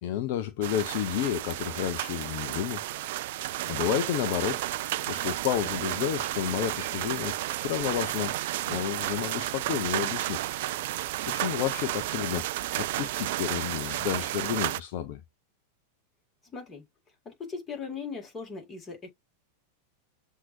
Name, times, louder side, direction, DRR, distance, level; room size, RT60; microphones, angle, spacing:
voice 1, 0.0-2.8 3.7-4.6 5.1-8.3 8.7-10.4 11.2-15.2, left 11 dB, 45° left, 0.5 m, -31 dB
sound 1, 0.6-14.8, right 15 dB, 50° right, 0.3 m, -32 dB
voice 2, 16.5-16.8 17.3-19.1, left 5 dB, 20° left, 2.1 m, -38 dB
7.5 x 2.7 x 2.6 m
figure-of-eight pair, 90°, 0 cm